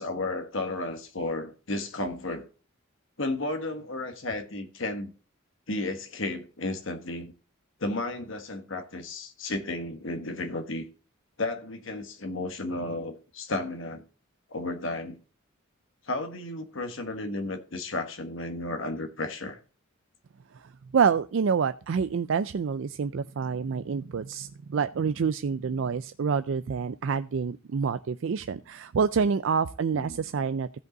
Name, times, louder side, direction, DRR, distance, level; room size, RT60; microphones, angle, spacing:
voice 1, 0.0-2.5 3.2-5.1 5.7-7.3 7.8-10.8 11.4-14.0 14.5-15.2 16.1-19.6 29.9-30.2, left 2 dB, 65° left, 1.4 m, -33 dB
voice 2, 20.9-30.7, right 6 dB, 60° right, 0.4 m, -27 dB
16.0 x 5.4 x 3.9 m
head